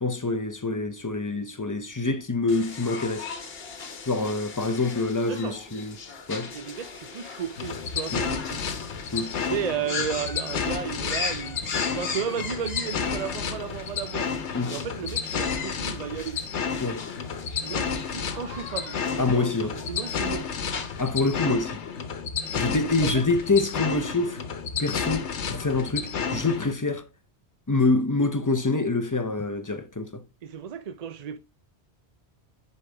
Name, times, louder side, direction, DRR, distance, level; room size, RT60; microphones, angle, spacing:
voice 1, 0.0-3.5 4.1-6.0 6.3-6.5 8.1-8.3 9.1-9.4 14.5-14.8 16.8-17.1 19.2-19.7 21.0-21.8 22.5-24.4 24.8-27.1 27.7-30.2, left 3 dB, 20° left, 0.6 m, -26 dB
sound 1, 2.5-21.3, left 5 dB, 60° left, 1.3 m, -38 dB
voice 2, 5.3-5.8 6.5-8.7 9.5-14.4 14.7-16.4 17.6-20.7 23.0-23.2 30.4-31.4, right 7 dB, 50° right, 0.5 m, -34 dB
sound 2, 7.6-26.7, left 6 dB, 85° left, 1.2 m, -31 dB
6.6 x 5.5 x 3.4 m
omnidirectional pair, 1.1 m